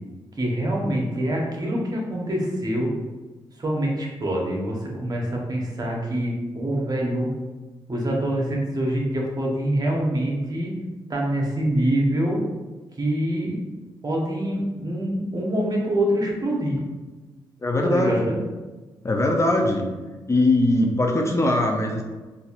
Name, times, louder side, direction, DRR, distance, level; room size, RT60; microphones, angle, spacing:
voice 1, 0.4-2.9 3.6-7.3 7.9-10.7 11.1-12.4 13.0-13.6 14.0-16.8 17.8-18.4, right 1 dB, 40° right, -1 dB, 1.0 m, -25 dB
voice 2, 17.6-18.3 19.0-19.9 20.3-22.0, left 1 dB, 30° left, 1 dB, 0.5 m, -21 dB
4.0 x 2.6 x 2.4 m, 1.3 s
supercardioid pair, 40°, 10 cm